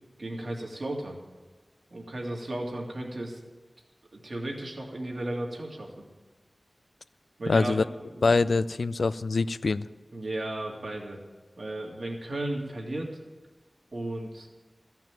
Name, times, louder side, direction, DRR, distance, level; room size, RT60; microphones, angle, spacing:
voice 1, 0.2-1.2 1.9-3.4 4.1-6.0 7.4-7.7 8.1-8.3 10.1-11.2 11.6-13.1 13.9-14.5, right 1 dB, 65° right, 0 dB, 2.3 m, -34 dB
voice 2, 7.5-7.8 8.2-9.9, left 3 dB, 80° left, 16 dB, 0.3 m, -24 dB
14.0 x 6.0 x 9.0 m, 1.3 s
wide cardioid pair, 80°, 0 cm